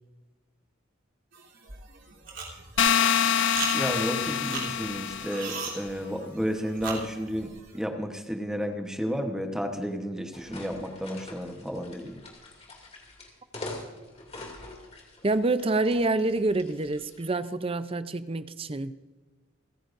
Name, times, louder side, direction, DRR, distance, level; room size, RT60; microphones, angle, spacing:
sound 1, 1.3-7.8, right 5 dB, 65° right, 3.3 m, -39 dB
sound 2, 2.8-5.7, left 8 dB, 60° left, 0.6 m, -25 dB
voice 1, 3.7-12.2, equal, 5° right, 1.0 m, -32 dB
sound 3, 10.3-17.4, left 2 dB, 30° left, 2.6 m, -44 dB
voice 2, 15.2-18.9, right 2 dB, 30° right, 0.5 m, -27 dB
28.5 x 10.0 x 2.6 m
head